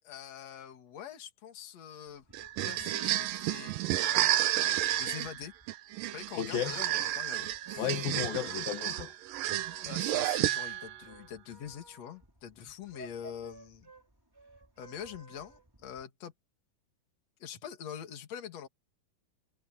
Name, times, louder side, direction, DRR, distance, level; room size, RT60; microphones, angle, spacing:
voice 1, 0.0-2.2 2.6-5.5 6.1-7.9 9.8-13.9 14.8-16.3 17.4-18.7, left 9 dB, 50° left, 3.2 m, -45 dB
sound 1, 2.1-16.0, right 1 dB, 5° right, 4.2 m, -55 dB
sound 2, 2.3-11.0, right 13 dB, 80° right, 2.5 m, -31 dB
voice 2, 6.4-6.8 7.8-9.1, left 9 dB, 85° left, 3.6 m, -33 dB
omnidirectional pair, 4.0 m